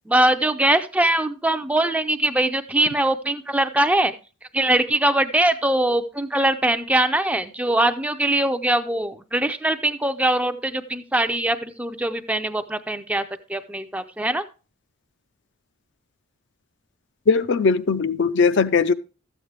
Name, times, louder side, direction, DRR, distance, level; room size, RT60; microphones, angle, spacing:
voice 1, 0.1-4.1 4.5-13.2 13.5-14.4, right 1 dB, 5° right, 0.4 m, -22 dB
voice 2, 17.3-18.9, left 4 dB, 50° left, 0.4 m, -19 dB
13.0 x 8.0 x 3.2 m
head